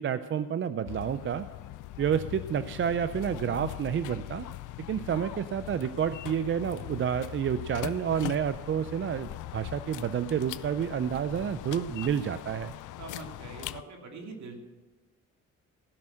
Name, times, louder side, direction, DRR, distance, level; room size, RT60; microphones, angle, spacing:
voice 1, 0.0-1.5 2.0-4.5 4.9-12.7, right 8 dB, 40° right, 12 dB, 0.5 m, -29 dB
sound 1, 0.8-13.8, left 15 dB, 80° left, 0.5 m, -41 dB
voice 2, 13.0-14.6, right 4 dB, 65° right, 2 dB, 2.5 m, -43 dB
16.0 x 6.1 x 7.6 m, 1.3 s
cardioid pair, 90°, 30 cm